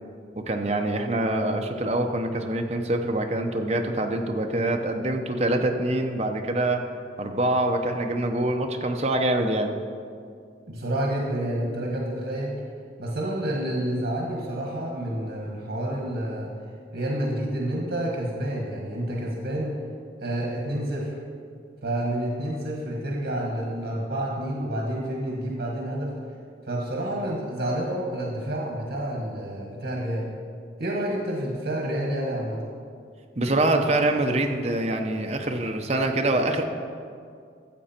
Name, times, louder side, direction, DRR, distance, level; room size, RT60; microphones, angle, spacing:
voice 1, 0.4-6.8 7.2-9.7 33.4-36.6, right 1 dB, 35° right, 4 dB, 0.8 m, -25 dB
voice 2, 10.7-12.6 13.0-16.5 16.9-19.7 20.2-21.1 21.8-26.1 26.6-30.3 30.8-32.6, right 1 dB, 85° right, -2 dB, 1.6 m, -29 dB
13.5 x 7.9 x 4.4 m, 2.3 s
head